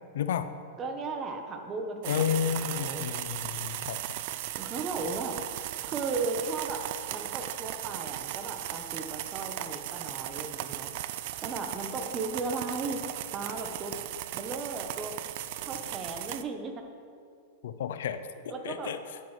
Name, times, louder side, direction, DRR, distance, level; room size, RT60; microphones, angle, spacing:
voice 1, 0.1-0.5 2.1-4.0 17.6-18.2 18.6-19.0, left 8 dB, 75° left, 10 dB, 0.5 m, -31 dB
voice 2, 0.8-3.1 4.6-5.4 5.8-6.9 7.1-10.9 11.4-13.0 13.3-14.0 14.3-15.1 15.7-16.8 18.0-18.1 18.5-18.9, right 3 dB, 25° right, 5 dB, 0.9 m, -36 dB
sound 1, 2.0-16.4, right 13 dB, 55° right, 0.3 m, -37 dB
9.2 x 9.0 x 3.2 m, 2.5 s
hypercardioid pair, 130°, 0 cm